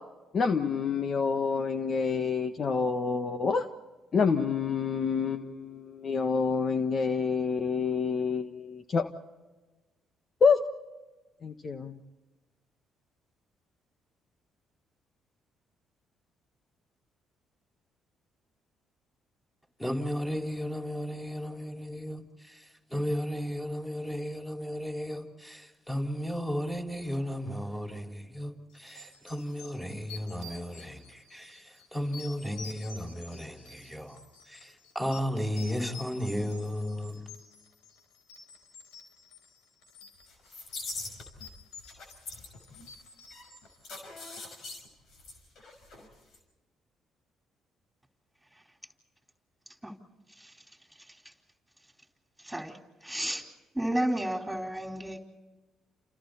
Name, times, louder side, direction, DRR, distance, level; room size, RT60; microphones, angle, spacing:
voice 1, 0.3-3.7 4.1-9.1 10.4-10.6 11.4-12.0, left 5 dB, 50° left, 1.4 m, -27 dB
voice 2, 19.8-22.2 22.9-31.6 31.9-34.2 34.5-37.2, equal, 10° left, 5.7 m, -34 dB
sound 1, 28.7-44.6, left 4 dB, 85° left, 3.5 m, -51 dB
sound 2, 40.3-41.5 41.8-46.1 46.3-46.4, left 3 dB, 65° left, 6.1 m, -42 dB
voice 3, 52.4-53.4 53.7-55.2, right 1 dB, 5° right, 4.4 m, -32 dB
29.0 x 29.0 x 4.3 m
hypercardioid pair, 55°, 0 cm